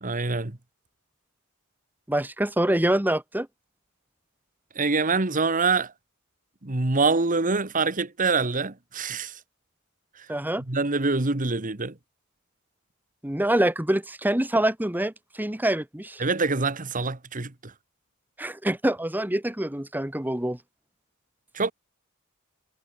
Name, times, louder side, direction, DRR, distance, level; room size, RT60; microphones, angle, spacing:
voice 1, 0.0-0.6 4.7-5.9 6.6-9.3 10.7-11.9 16.2-17.5 21.5-21.7, right 3 dB, 40° right, 1.6 m, -25 dB
voice 2, 2.1-3.5 10.3-10.6 13.2-16.2 18.4-20.6, right 1 dB, 10° right, 1.3 m, -25 dB
head